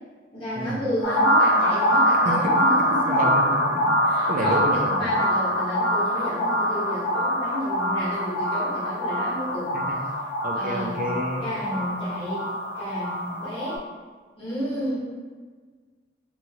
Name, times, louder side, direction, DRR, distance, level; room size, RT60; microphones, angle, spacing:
voice 1, 0.3-3.3 4.0-9.7 10.5-11.1 11.4-12.5 12.7-13.8 14.4-15.0, equal, 30° left, -10 dB, 1.0 m, -31 dB
sound 1, 1.0-13.8, equal, 75° left, 0.6 m, -24 dB
voice 2, 2.2-2.6 2.9-4.0 4.3-5.1 9.7-10.0 10.4-11.5, right 1 dB, 45° right, 1 dB, 0.4 m, -29 dB
3.0 x 2.4 x 2.7 m, 1.5 s
head